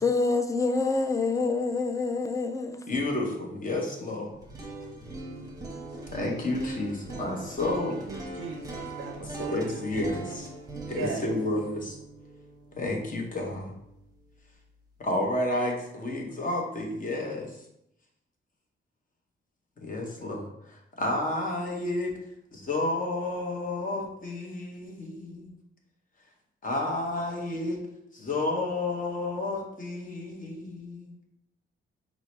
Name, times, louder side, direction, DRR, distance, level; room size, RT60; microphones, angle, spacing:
voice 1, 0.0-2.8, left 3 dB, 15° left, 0.3 m, -26 dB
voice 2, 2.9-4.3 6.1-8.0 9.5-10.5 10.9-12.0 12.7-13.7 15.0-17.6 19.8-22.1 22.5-25.6 26.6-27.8 28.1-31.1, left 2 dB, 40° left, 0.9 m, -31 dB
sound 1, 4.3-14.4, right 2 dB, 15° right, 0.8 m, -40 dB
voice 3, 8.1-10.1 10.9-11.3, right 5 dB, 80° right, 0.5 m, -38 dB
4.6 x 2.0 x 4.4 m
wide cardioid pair, 130°, 21 cm